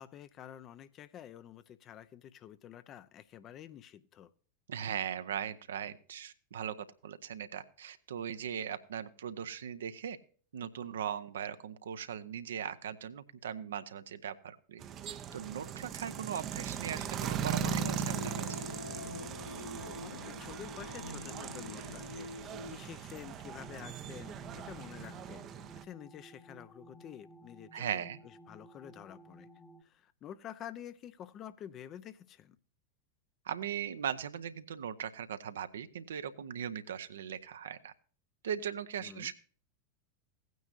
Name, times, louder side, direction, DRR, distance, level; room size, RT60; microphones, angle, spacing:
voice 1, 0.0-4.3 20.0-25.4 25.8-29.5 29.8-32.6 39.0-39.3, left 10 dB, 30° left, 0.6 m, -49 dB
voice 2, 4.7-10.2 10.5-18.3 27.7-28.2 33.5-37.9 38.4-39.3, right 8 dB, 65° right, 0.7 m, -39 dB
sound 1, 14.8-25.8, right 8 dB, 30° right, 0.7 m, -39 dB
sound 2, 17.3-22.8, left 3 dB, 75° left, 0.4 m, -45 dB
sound 3, 23.5-29.8, equal, 10° left, 1.1 m, -56 dB
16.5 x 9.3 x 2.6 m
figure-of-eight pair, 90°, 0 cm